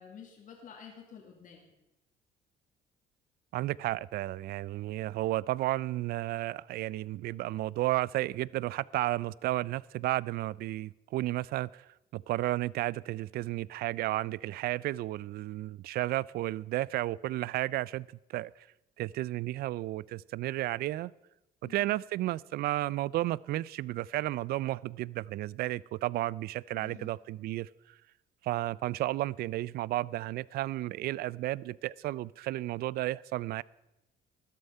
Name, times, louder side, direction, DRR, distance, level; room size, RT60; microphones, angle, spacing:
voice 1, 0.0-1.7 21.6-22.0 26.7-27.1, left 7 dB, 50° left, 0 dB, 2.2 m, -50 dB
voice 2, 3.5-18.5 19.0-21.1 21.6-27.7 28.4-33.6, right 16 dB, 65° right, 24 dB, 0.4 m, -33 dB
13.0 x 11.5 x 5.4 m, 0.93 s
cardioid pair, 110°, 17 cm